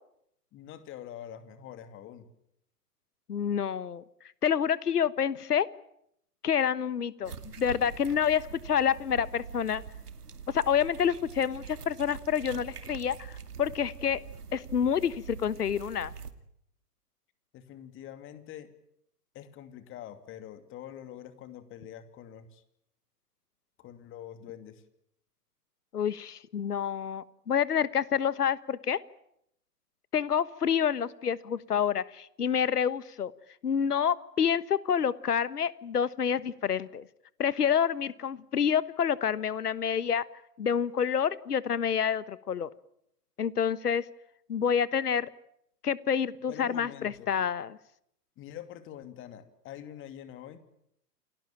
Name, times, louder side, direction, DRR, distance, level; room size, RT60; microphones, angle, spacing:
voice 1, 0.5-2.3 17.5-18.7 19.3-22.6 23.8-24.8 46.5-47.3 48.4-50.6, left 10 dB, 25° left, 11 dB, 2.6 m, -45 dB
voice 2, 3.3-4.0 4.4-5.7 6.4-9.8 10.5-13.3 13.6-14.2 14.5-16.1 25.9-29.0 30.1-33.3 33.6-37.1 37.4-40.2 40.6-42.7 43.4-44.0 44.5-45.3 45.8-47.8, left 8 dB, 75° left, 18 dB, 1.4 m, -28 dB
sound 1, 7.2-16.3, right 6 dB, 75° right, 2.5 m, -44 dB
29.0 x 18.0 x 8.9 m, 0.74 s
figure-of-eight pair, 115°, 47 cm